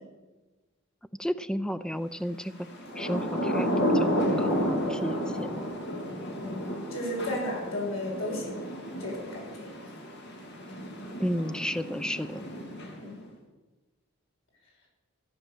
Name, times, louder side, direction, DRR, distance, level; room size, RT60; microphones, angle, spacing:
voice 1, 1.2-2.5 3.0-5.7 11.2-12.4, equal, 5° left, 12 dB, 0.4 m, -32 dB
Thunder / Rain, 2.7-13.2, equal, 55° left, 2.4 m, -31 dB
voice 2, 6.4-8.6 9.0-9.7 13.0-13.1, left 1 dB, 85° left, -2 dB, 6.0 m, -34 dB
14.5 x 8.6 x 7.0 m, 1.2 s
head